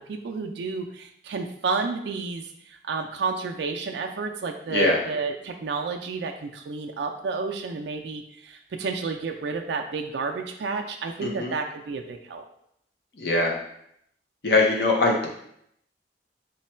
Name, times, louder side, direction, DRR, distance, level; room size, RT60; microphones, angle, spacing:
voice 1, 0.1-2.4 2.7-12.4, right 4 dB, 75° right, 4 dB, 0.4 m, -31 dB
voice 2, 11.2-11.5 13.2-13.6 14.4-15.3, left 2 dB, 60° left, 0 dB, 0.7 m, -22 dB
3.1 x 2.2 x 4.2 m, 0.72 s
head